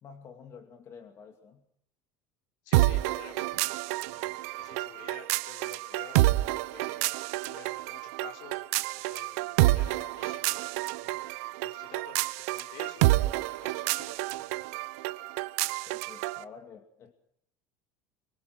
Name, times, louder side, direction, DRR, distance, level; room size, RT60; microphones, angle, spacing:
voice 1, 0.0-1.6 15.9-17.1, left 6 dB, 35° left, 5 dB, 2.4 m, -49 dB
voice 2, 2.6-3.6 4.1-6.2 6.5-7.1 7.4-8.7 9.0-10.7 11.0-11.2 11.6-14.4, left 6 dB, 65° left, 4 dB, 6.0 m, -50 dB
sound 1, 2.7-16.4, right 19 dB, 85° right, 0.9 m, -29 dB
25.0 x 23.5 x 6.2 m, 0.68 s
cardioid pair, 145°, 8 cm